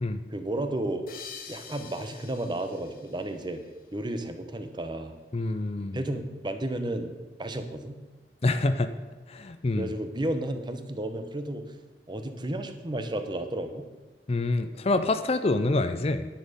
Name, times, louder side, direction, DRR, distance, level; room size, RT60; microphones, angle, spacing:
voice 1, 0.3-1.0 1.5-3.6 3.9-5.1 5.9-7.1 7.4-8.0 9.8-11.6 12.1-13.8, right 1 dB, 25° right, 8 dB, 0.8 m, -32 dB
sound 1, 1.1-4.1, left 6 dB, 55° left, 0.9 m, -47 dB
voice 2, 5.3-6.0 8.4-8.9 9.3-9.9 14.3-16.3, left 2 dB, 35° left, 10 dB, 0.5 m, -26 dB
10.0 x 9.5 x 5.2 m, 1.3 s
head